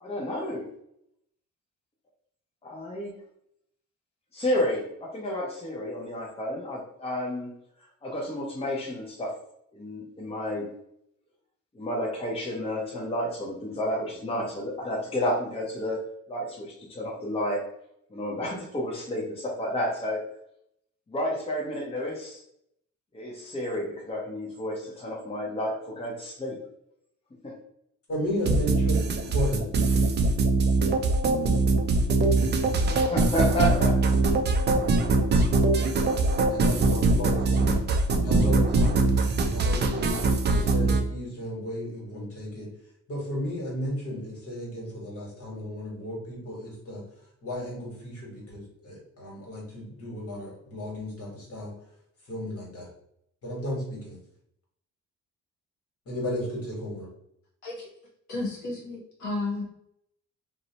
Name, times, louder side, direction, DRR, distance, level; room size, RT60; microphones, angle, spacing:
voice 1, 0.0-0.6 2.6-3.1 4.3-7.5 8.0-9.3 9.7-10.7 11.7-16.0 16.3-17.6 18.1-20.2 21.1-22.4 23.1-26.6 27.4-27.5 32.9-34.0, left 1 dB, 20° left, -2 dB, 0.7 m, -31 dB
voice 2, 28.1-29.6 36.5-37.8 38.2-39.1 39.3-40.3 40.5-42.7 43.1-47.0 47.4-51.7 52.3-52.9 53.4-54.2 56.1-57.1, equal, 50° left, -3 dB, 1.4 m, -34 dB
sound 1, 28.4-41.0, right 3 dB, 35° right, 0.4 m, -22 dB
voice 3, 57.6-57.9 58.3-59.6, left 2 dB, 70° left, -4 dB, 1.0 m, -32 dB
2.6 x 2.1 x 2.8 m, 0.74 s
cardioid pair, 90°, 30 cm